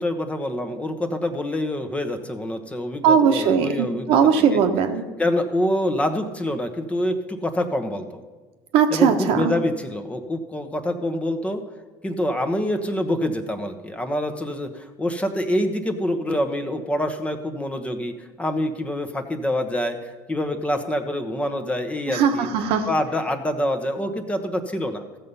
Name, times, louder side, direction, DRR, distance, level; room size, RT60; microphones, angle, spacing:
voice 1, 0.0-4.2 4.5-4.6 5.2-8.2 8.9-11.6 12.0-22.5 22.9-25.0, left 1 dB, 10° left, 6 dB, 1.1 m, -26 dB
voice 2, 3.0-5.0 8.7-9.5 22.1-22.9, right 7 dB, 65° right, 6 dB, 1.2 m, -19 dB
15.5 x 6.7 x 5.5 m, 1.3 s
supercardioid pair, 105°, 11 cm